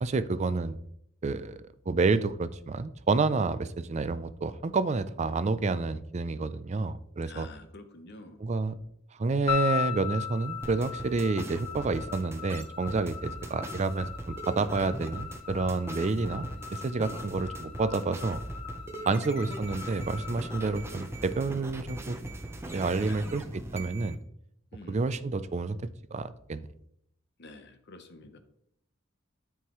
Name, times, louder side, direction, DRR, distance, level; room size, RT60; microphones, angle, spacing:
voice 1, 0.0-0.8 1.2-7.5 8.4-8.8 9.2-18.4 19.1-22.2 22.7-24.2 24.9-25.8 26.1-26.7, right 3 dB, 35° right, 13 dB, 0.4 m, -29 dB
voice 2, 7.3-8.4 18.9-19.3 23.1-23.2 24.7-25.1 27.4-28.4, left 2 dB, 60° left, 8 dB, 1.0 m, -48 dB
sound 1, 9.5-21.8, left 8 dB, 30° left, 1.3 m, -39 dB
sound 2, 10.6-24.1, right 1 dB, 15° right, 0.8 m, -40 dB
12.5 x 4.7 x 3.1 m, 0.72 s
head